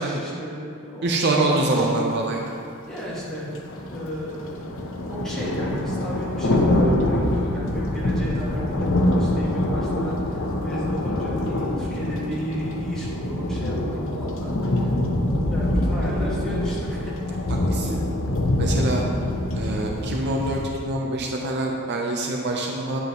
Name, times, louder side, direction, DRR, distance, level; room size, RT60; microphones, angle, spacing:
voice 1, 0.0-2.1 2.9-3.5 3.9-4.7 5.1-14.5 14.8-14.9 15.5-17.4 17.9-18.0, equal, 5° left, -9 dB, 1.9 m, -33 dB
voice 2, 1.0-2.4 17.7-18.0 18.6-19.0 19.5-23.0, right 2 dB, 50° right, 0 dB, 0.7 m, -25 dB
sound 1, 1.9-2.0 2.9-20.7, left 1 dB, 60° left, 0.8 m, -25 dB
9.8 x 7.9 x 3.0 m, 2.5 s
head